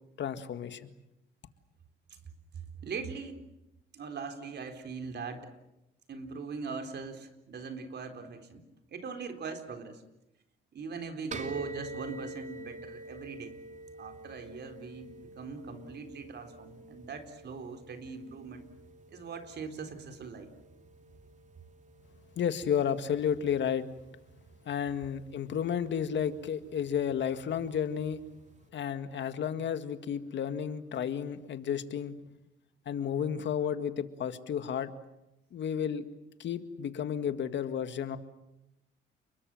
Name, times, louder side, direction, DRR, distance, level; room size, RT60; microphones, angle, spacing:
voice 1, 0.2-0.9 22.4-23.9 24.7-28.2 28.7-32.2 32.9-34.9 35.5-36.1 36.4-38.2, left 8 dB, 65° left, 10 dB, 1.9 m, -32 dB
voice 2, 2.5-3.4 3.9-5.5 6.1-8.6 8.9-10.0 10.7-13.6 14.0-18.7 19.1-20.5, right 5 dB, 60° right, 7 dB, 4.1 m, -41 dB
sound 1, 11.3-28.7, right 2 dB, 40° right, 3.2 m, -49 dB
30.0 x 22.0 x 7.7 m, 0.90 s
cardioid pair, 90°, 20 cm